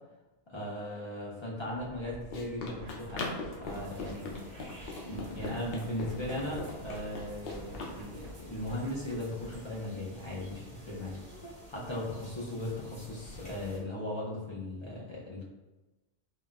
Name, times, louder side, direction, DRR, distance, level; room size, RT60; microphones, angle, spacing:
voice 1, 0.5-4.3 5.1-11.2 11.7-15.4, left 1 dB, 50° left, -5 dB, 0.3 m, -38 dB
Run, 1.8-8.0, left 3 dB, 70° left, 0.8 m, -41 dB
sound 1, 2.8-9.6, right 1 dB, 75° right, 0.9 m, -50 dB
sound 2, 3.7-13.8, left 1 dB, 5° left, 0.8 m, -50 dB
3.7 x 2.1 x 2.3 m, 1.1 s
omnidirectional pair, 1.1 m